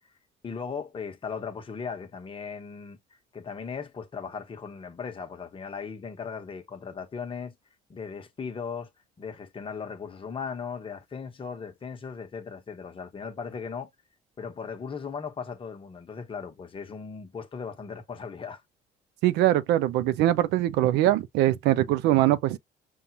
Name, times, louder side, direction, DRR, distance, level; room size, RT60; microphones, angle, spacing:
voice 1, 0.4-3.0 3.3-7.5 7.9-8.9 9.2-13.9 14.4-18.6, left 6 dB, 30° left, 1.0 m, -37 dB
voice 2, 19.2-22.6, right 14 dB, 85° right, 0.5 m, -22 dB
5.4 x 2.4 x 2.7 m
cardioid pair, 110°, 17 cm